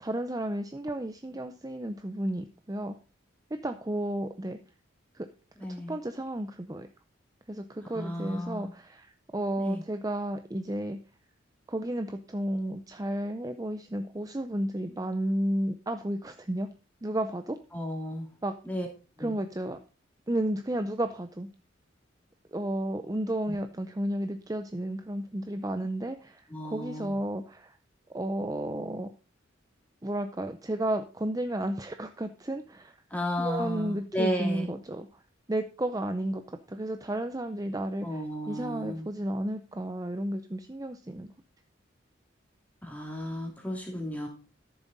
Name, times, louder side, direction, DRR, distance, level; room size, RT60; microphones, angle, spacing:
voice 1, 0.0-3.0 3.6-4.6 5.1-5.3 5.9-6.9 7.5-11.0 11.7-16.7 17.0-17.6 18.4-18.5 19.2-19.8 20.3-21.5 22.5-27.8 28.1-29.1 30.0-33.0 33.4-35.2 35.5-41.3, right 1 dB, 20° right, 8 dB, 0.5 m, -32 dB
voice 2, 5.6-6.0 7.9-8.7 9.6-9.8 17.7-18.3 18.6-18.9 19.2-19.3 23.5-23.6 26.5-27.2 33.1-34.7 38.0-39.1 42.8-44.3, equal, 10° left, 0 dB, 2.8 m, -33 dB
13.0 x 7.2 x 4.0 m, 0.34 s
head